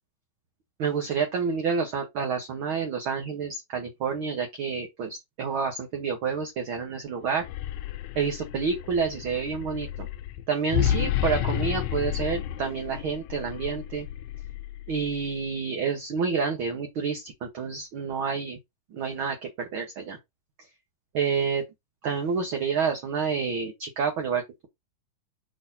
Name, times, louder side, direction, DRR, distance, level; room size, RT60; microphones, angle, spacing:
voice 1, 0.8-7.4 8.1-10.1 10.5-14.1 14.9-18.6 18.9-20.2 21.1-21.6 22.0-24.7, right 5 dB, 55° right, 1.5 m, -29 dB
sound 1, 7.3-15.4, left 11 dB, 75° left, 1.8 m, -31 dB
6.3 x 5.8 x 2.7 m
omnidirectional pair, 3.6 m